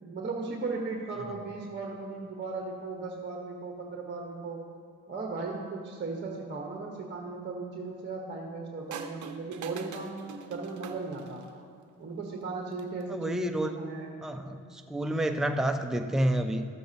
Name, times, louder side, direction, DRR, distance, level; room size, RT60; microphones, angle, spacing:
voice 1, 0.0-4.6 5.1-11.4 12.0-14.1, right 3 dB, 25° right, 1 dB, 1.2 m, -37 dB
sound 1, 8.9-11.6 12.6-13.0, right 6 dB, 45° right, 0.8 m, -43 dB
voice 2, 13.1-13.8 14.2-16.7, right 1 dB, ahead, 6 dB, 0.5 m, -29 dB
13.0 x 7.7 x 2.9 m, 2.5 s
supercardioid pair, 65°, 41 cm